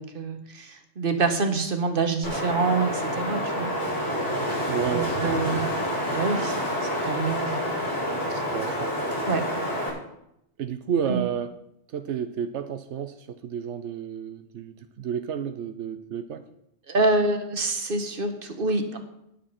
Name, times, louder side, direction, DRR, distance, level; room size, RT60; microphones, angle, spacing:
voice 1, 0.0-3.7 4.9-5.7 6.1-6.5 6.8-7.6 8.3-8.4 9.3-9.4 11.1-11.2 16.9-19.0, right 3 dB, 50° right, 6 dB, 1.6 m, -26 dB
Wind, 2.2-9.9, equal, 90° left, 6.2 m, -28 dB
voice 2, 4.7-5.8 8.5-8.9 10.6-11.5 11.9-16.4, right 8 dB, 85° right, 9 dB, 1.0 m, -31 dB
19.0 x 7.4 x 4.3 m, 0.79 s
omnidirectional pair, 1.2 m